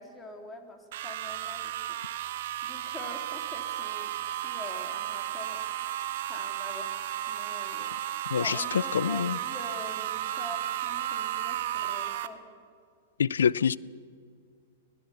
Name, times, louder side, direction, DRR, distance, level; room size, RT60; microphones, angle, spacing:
voice 1, 0.0-2.3 2.6-5.6 6.3-6.9 7.3-7.9 8.4-12.4, left 1 dB, 15° left, 3.4 m, -45 dB
sound 1, 0.9-12.3, right 12 dB, 60° right, 1.1 m, -34 dB
voice 2, 8.3-9.4 13.2-13.8, left 7 dB, 85° left, 0.5 m, -26 dB
25.0 x 16.5 x 7.1 m
hypercardioid pair, 115°, 0 cm